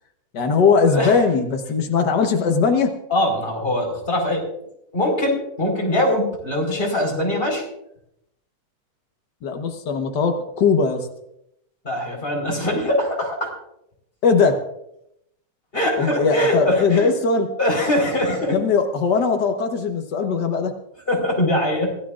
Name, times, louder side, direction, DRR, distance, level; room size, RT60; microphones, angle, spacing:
voice 1, 0.3-2.9 9.4-11.1 14.2-14.6 16.0-17.5 18.5-20.7, left 5 dB, 80° left, 4 dB, 0.9 m, -19 dB
voice 2, 0.8-1.2 3.1-4.4 4.9-7.6 11.8-13.5 15.7-17.1 17.6-18.5 21.1-21.9, left 1 dB, 15° left, 0 dB, 4.5 m, -22 dB
25.0 x 16.5 x 2.5 m, 0.79 s
omnidirectional pair, 3.8 m